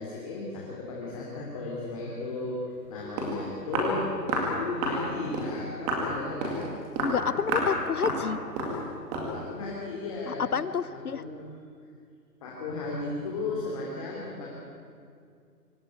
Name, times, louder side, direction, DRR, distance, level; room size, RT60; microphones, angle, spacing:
voice 1, 0.0-2.6 2.9-6.6 9.3-10.5 11.1-11.4 12.4-14.5, left 3 dB, 20° left, -4 dB, 3.0 m, -35 dB
Walk footsteps, 2.8-2.9 3.2-3.4 3.7-3.9 4.3-4.5 4.8-5.0 5.3-5.5 5.9-6.1 6.4-6.6 7.0-7.2 7.5-7.7 8.0-8.2 8.6-8.8 9.1-9.3, right 1 dB, 10° right, 2.1 m, -29 dB
voice 2, 7.0-8.4 10.3-11.2, left 6 dB, 65° left, 15 dB, 1.0 m, -29 dB
25.0 x 15.0 x 9.6 m, 2.3 s
hypercardioid pair, 170°, 49 cm